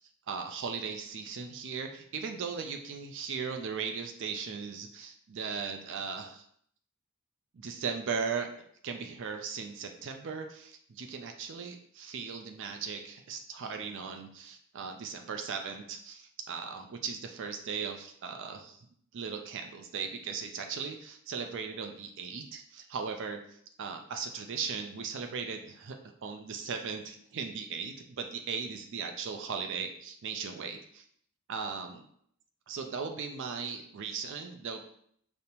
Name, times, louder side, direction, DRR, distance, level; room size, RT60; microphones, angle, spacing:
voice 1, 0.3-6.4 7.5-8.5 8.8-18.8 19.1-23.4 23.8-31.0 31.5-32.0 32.7-34.8, right 5 dB, 55° right, 5 dB, 0.4 m, -38 dB
5.1 x 2.1 x 2.9 m, 0.64 s
head